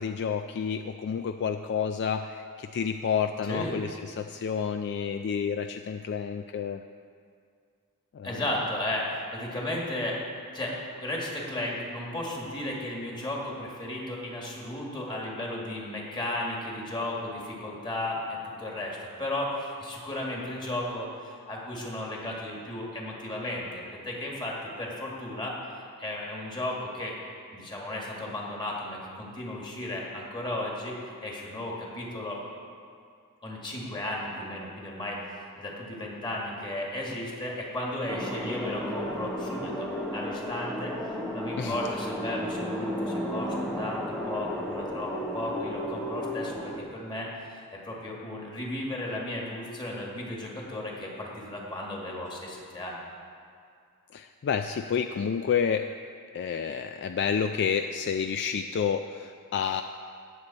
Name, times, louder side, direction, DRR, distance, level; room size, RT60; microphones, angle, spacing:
voice 1, 0.0-6.8 8.1-8.4 41.6-41.8 54.1-55.9 56.3-59.8, left 7 dB, 50° left, 8 dB, 0.3 m, -29 dB
voice 2, 3.4-3.8 8.2-10.2 10.5-27.2 27.5-30.9 31.2-32.4 33.4-53.0, left 1 dB, 20° left, -3 dB, 1.9 m, -34 dB
sound 1, 38.1-46.8, equal, 5° left, 0.9 m, -33 dB
17.5 x 6.8 x 4.2 m, 2.3 s
head